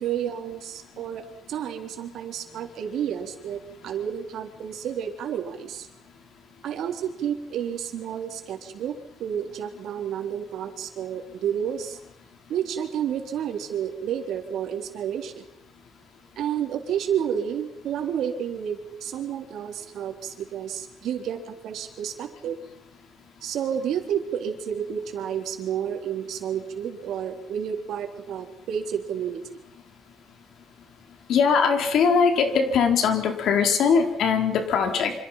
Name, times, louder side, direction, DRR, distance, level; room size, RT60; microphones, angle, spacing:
voice 1, 0.0-5.9 6.6-12.0 12.5-15.4 16.4-22.6 23.4-29.4, right 9 dB, 85° right, 4 dB, 4.0 m, -30 dB
voice 2, 31.3-35.1, left 6 dB, 75° left, 5 dB, 4.2 m, -21 dB
27.0 x 26.5 x 5.9 m, 0.80 s
cardioid pair, 145°, 0 cm